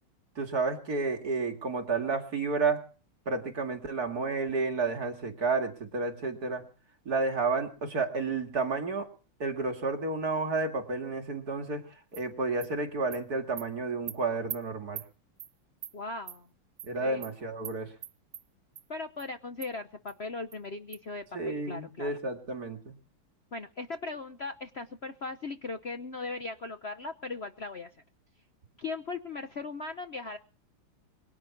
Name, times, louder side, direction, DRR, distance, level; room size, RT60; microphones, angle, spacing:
voice 1, 0.4-2.8 3.3-6.6 7.1-9.1 9.4-11.8 12.1-15.0 16.8-17.9 21.3-22.9, right 3 dB, 45° right, 3 dB, 2.7 m, -31 dB
Animal, 12.1-12.2 12.6-12.7 13.1-13.2 13.6-13.7 14.1-14.2 14.5-14.6 15.0-15.1 15.4-15.5 15.8-15.9 16.3-16.4 16.8-16.9 17.2-17.3 17.6-17.8 18.0-18.4 18.8-18.9 19.2-19.3 19.6-19.7 20.1-20.2 20.5-20.6 20.9-21.0, right 11 dB, 90° right, 1.9 m, -40 dB
voice 2, 15.9-16.5 17.0-17.2 18.9-22.1 23.5-27.9 28.8-30.4, left 3 dB, 60° left, 8 dB, 0.6 m, -38 dB
23.0 x 10.5 x 6.0 m, 0.39 s
omnidirectional pair, 2.4 m